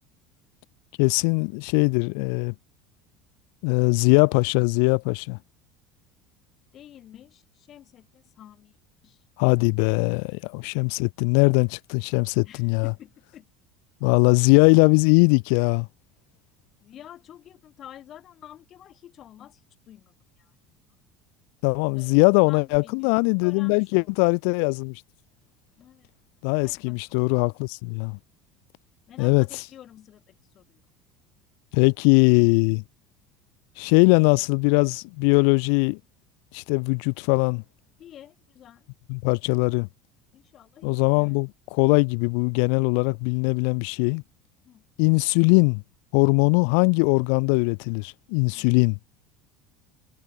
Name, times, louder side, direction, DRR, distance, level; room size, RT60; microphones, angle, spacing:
voice 1, 1.0-2.5 3.6-5.4 9.4-12.9 14.0-15.9 21.6-25.0 26.4-28.2 29.2-29.4 31.7-32.8 33.8-36.0 36.5-37.6 39.1-39.9 40.8-44.2 45.0-45.8 46.1-49.0, left 40 dB or more, 75° left, 0.9 m, -21 dB
voice 2, 6.7-8.8 9.0-9.6 10.5-10.6 12.4-13.5 16.8-20.5 21.9-24.1 25.8-26.1 26.6-27.1 29.1-30.8 38.0-38.9 40.3-41.4 44.6-44.9 48.5-48.7, left 11 dB, 45° left, 3.8 m, -49 dB
supercardioid pair, 105°, 0 cm